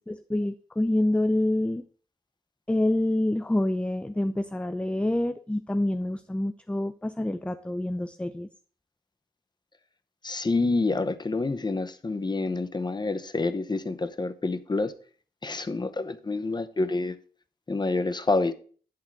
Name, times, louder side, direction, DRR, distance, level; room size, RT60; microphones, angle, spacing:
voice 1, 0.1-1.9 2.7-8.5, left 1 dB, 5° left, 0.5 m, -27 dB
voice 2, 10.2-14.9 15.4-17.2 17.7-18.5, left 3 dB, 30° left, 0.8 m, -27 dB
10.5 x 3.7 x 7.3 m
wide cardioid pair, 100°, 16 cm